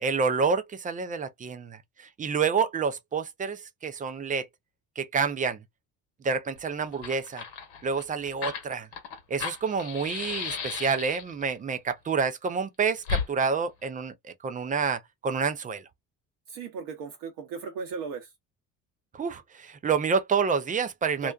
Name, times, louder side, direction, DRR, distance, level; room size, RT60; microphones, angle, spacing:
voice 1, 0.0-4.5 5.0-5.6 6.2-7.4 7.8-8.9 9.3-15.9 19.1-21.3, right 5 dB, 20° right, 0.4 m, -28 dB
Fire, 6.6-6.7 6.9-11.4 13.0-13.3, left 7 dB, 70° left, 1.0 m, -34 dB
voice 2, 16.5-18.3 21.2-21.3, right 5 dB, 55° right, 0.8 m, -36 dB
2.5 x 2.2 x 2.3 m
hypercardioid pair, 60°, 47 cm